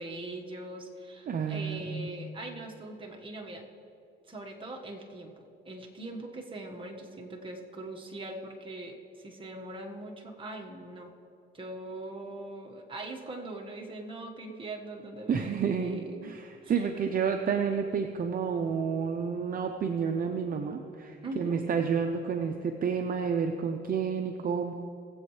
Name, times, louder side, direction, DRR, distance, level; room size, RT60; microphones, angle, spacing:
voice 1, 0.0-3.6 4.3-11.1 11.5-16.3 16.6-16.9 21.2-21.6, right 2 dB, 25° right, 0 dB, 1.5 m, -41 dB
voice 2, 1.3-2.1 15.3-24.7, right 6 dB, 45° right, 5 dB, 0.6 m, -30 dB
19.0 x 8.2 x 3.2 m, 2.7 s
cardioid pair, 90°, 20 cm